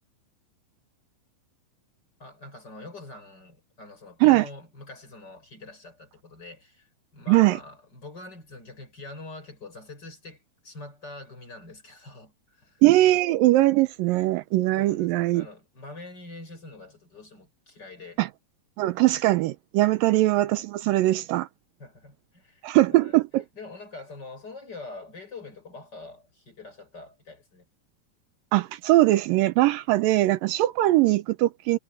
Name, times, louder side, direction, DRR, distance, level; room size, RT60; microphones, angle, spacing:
voice 1, 2.2-12.8 13.1-13.2 14.8-18.2 19.9-20.2 21.8-22.6 22.9-23.2 23.5-27.7, left 2 dB, 30° left, 5.9 m, -44 dB
voice 2, 12.8-15.5 18.2-18.3 18.8-21.5 22.6-23.4 28.5-31.8, right 17 dB, 80° right, 2.3 m, -21 dB
omnidirectional pair, 4.1 m